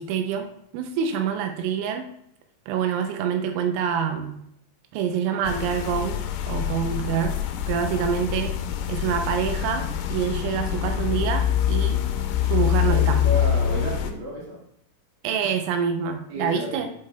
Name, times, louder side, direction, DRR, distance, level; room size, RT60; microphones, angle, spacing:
voice 1, 0.0-2.1 2.7-4.4 4.9-6.2 6.5-8.6 8.9-12.0 12.4-13.2 15.2-16.9, right 7 dB, 85° right, 5 dB, 3.0 m, -26 dB
sound 1, 5.4-14.1, left 10 dB, 85° left, 3.1 m, -25 dB
voice 2, 12.9-14.7 16.3-16.9, equal, 50° right, -5 dB, 1.6 m, -32 dB
10.5 x 5.5 x 2.2 m, 0.73 s
omnidirectional pair, 5.6 m